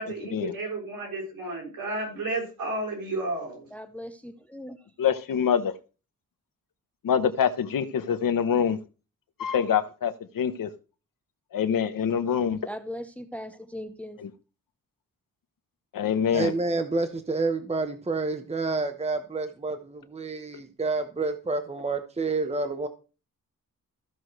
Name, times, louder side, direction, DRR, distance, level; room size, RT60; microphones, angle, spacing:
voice 1, 0.0-3.7, right 2 dB, 70° right, 6.7 m, -32 dB
voice 2, 3.7-4.9 12.7-14.2, left 1 dB, 5° left, 0.8 m, -39 dB
voice 3, 5.0-5.7 7.0-8.8 9.4-10.7 11.5-12.7 14.2-14.3 15.9-16.5 20.5-20.6, left 8 dB, 70° left, 1.0 m, -25 dB
voice 4, 16.3-22.9, right 3 dB, 20° right, 1.0 m, -29 dB
15.0 x 6.2 x 3.2 m
cardioid pair, 95°, 35 cm